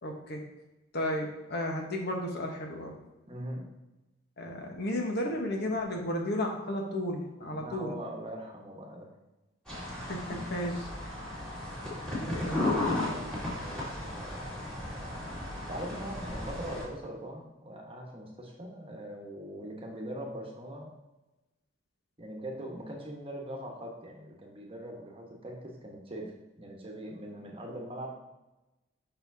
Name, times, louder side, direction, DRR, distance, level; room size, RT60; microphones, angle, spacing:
voice 1, 0.0-0.4 0.9-2.9 4.4-7.9 10.0-10.2 10.5-10.8 12.2-12.8, left 1 dB, 55° left, 1 dB, 1.1 m, -33 dB
voice 2, 3.3-3.7 7.4-9.1 10.3-10.4 12.2-12.5 12.8-15.2 15.6-20.9 22.2-28.2, right 1 dB, 30° right, -1 dB, 1.2 m, -42 dB
sound 1, 9.7-16.8, left 2 dB, 5° left, 2.1 m, -35 dB
7.0 x 5.5 x 2.7 m, 1.0 s
head